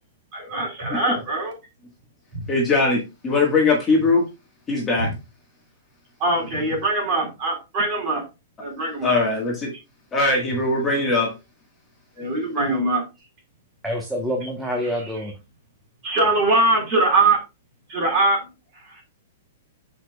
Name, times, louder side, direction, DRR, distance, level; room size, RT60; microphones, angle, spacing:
voice 1, 0.3-1.5 2.3-2.5 5.0-5.1 6.2-8.2 8.6-9.2 12.1-13.0 14.8-14.9 16.0-17.4 17.9-18.4 18.7-19.0, right 2 dB, 30° right, 0 dB, 4.4 m, -22 dB
voice 2, 2.5-4.2 4.7-5.1 9.0-9.7 10.1-11.3, left 3 dB, 15° left, -2 dB, 1.5 m, -20 dB
voice 3, 13.8-15.3, equal, ahead, -1 dB, 1.0 m, -27 dB
14.0 x 5.1 x 2.3 m, 0.27 s
hypercardioid pair, 170°, 0 cm